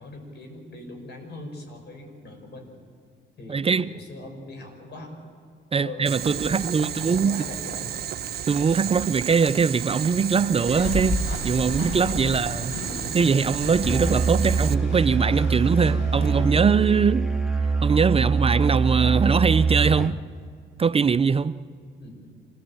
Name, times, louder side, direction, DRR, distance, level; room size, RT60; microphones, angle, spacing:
voice 1, 0.0-2.7 3.4-5.2 5.8-8.0 22.0-22.2, left 2 dB, 60° left, 6.4 m, -41 dB
voice 2, 3.5-3.9 5.7-7.4 8.5-12.7 13.1-17.3 17.8-20.2 20.8-21.5, right 5 dB, 30° right, 0.5 m, -22 dB
Boiling, 6.1-14.7, right 9 dB, 55° right, 0.9 m, -33 dB
sound 1, 10.7-16.6, left 1 dB, 80° left, 4.2 m, -32 dB
Musical instrument, 13.8-20.2, right 4 dB, ahead, 1.9 m, -24 dB
27.0 x 17.0 x 8.9 m
cardioid pair, 90°, 20 cm